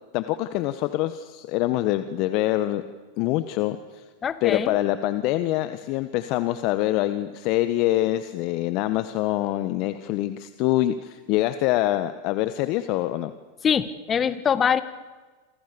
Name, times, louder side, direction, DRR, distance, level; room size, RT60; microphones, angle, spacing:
voice 1, 0.1-2.8 3.2-4.0 4.4-13.3, left 15 dB, 50° left, 12 dB, 1.4 m, -25 dB
voice 2, 4.2-4.7 13.6-14.8, left 7 dB, 25° left, 14 dB, 1.9 m, -23 dB
28.5 x 26.5 x 7.1 m, 1.3 s
hypercardioid pair, 95°, 0 cm